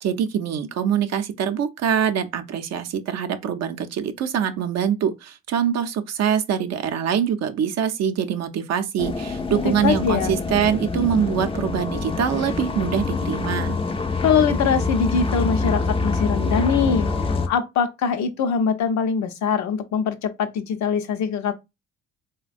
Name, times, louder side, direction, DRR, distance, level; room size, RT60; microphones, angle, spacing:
voice 1, 0.0-13.8, right 8 dB, 60° right, 0.5 m, -24 dB
sound 1, 9.0-17.5, left 3 dB, 20° left, 0.4 m, -25 dB
voice 2, 9.5-10.3 14.2-21.5, left 6 dB, 65° left, 0.6 m, -23 dB
3.3 x 2.1 x 2.4 m
cardioid pair, 90°, 30 cm